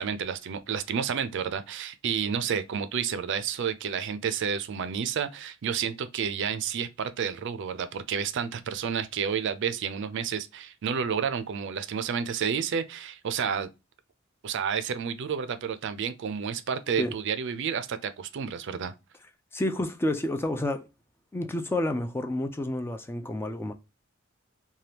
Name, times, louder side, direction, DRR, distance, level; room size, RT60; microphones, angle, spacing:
voice 1, 0.0-13.7 14.4-18.9, right 7 dB, 60° right, 0.4 m, -30 dB
voice 2, 19.5-20.9 21.3-23.7, left 1 dB, 10° left, 0.3 m, -29 dB
3.3 x 2.2 x 2.7 m
head